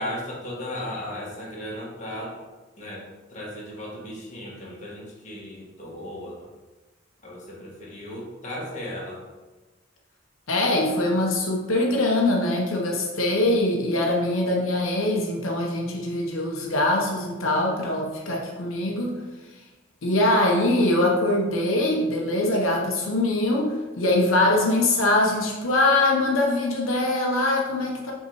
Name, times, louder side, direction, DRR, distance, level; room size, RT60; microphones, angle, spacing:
voice 1, 0.0-2.4 2.8-6.5 7.2-9.2, left 1 dB, 35° left, -4 dB, 1.5 m, -36 dB
voice 2, 10.5-19.1 20.0-28.1, left 2 dB, 85° left, -1 dB, 1.0 m, -23 dB
5.6 x 3.7 x 4.6 m, 1.2 s
head